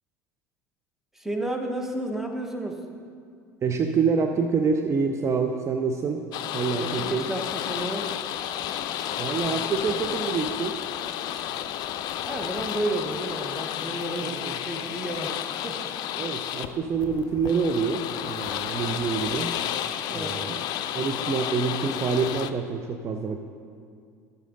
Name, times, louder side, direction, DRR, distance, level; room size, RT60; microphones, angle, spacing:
voice 1, 1.1-2.8 6.8-8.1 12.3-16.0 20.1-20.4, right 1 dB, 5° right, 3 dB, 1.2 m, -32 dB
voice 2, 3.6-6.3 6.5-7.3 9.2-10.7 14.2-14.6 16.2-19.5 20.1-20.6 20.9-23.4, right 5 dB, 35° right, 5 dB, 0.6 m, -27 dB
sound 1, 6.3-22.5, left 11 dB, 50° left, 0.4 m, -32 dB
12.0 x 8.2 x 3.8 m, 2.2 s
hypercardioid pair, 70°, 9 cm